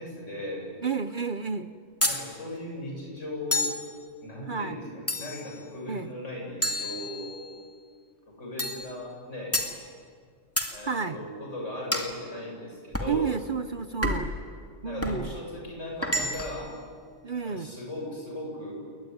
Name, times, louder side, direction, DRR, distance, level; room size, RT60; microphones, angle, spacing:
voice 1, 0.0-0.7 2.0-3.7 4.2-7.4 8.3-9.6 10.7-13.3 14.8-16.7 17.4-18.7, left 1 dB, 70° left, -1 dB, 8.1 m, -38 dB
voice 2, 0.8-1.7 4.5-4.8 5.9-6.1 10.9-11.3 13.1-14.3 14.8-15.3 17.2-17.7, right 5 dB, 45° right, 11 dB, 0.9 m, -30 dB
sound 1, 2.0-2.3 3.5-3.9 5.1-5.5 6.6-7.5 8.6-8.9 9.5-9.8 10.6-10.8 11.9-12.2 12.9-13.2 14.0-14.4 15.0-15.2 16.0-16.6, left 1 dB, 10° left, 2.4 m, -29 dB
30.0 x 20.0 x 9.6 m, 2.1 s
omnidirectional pair, 1.3 m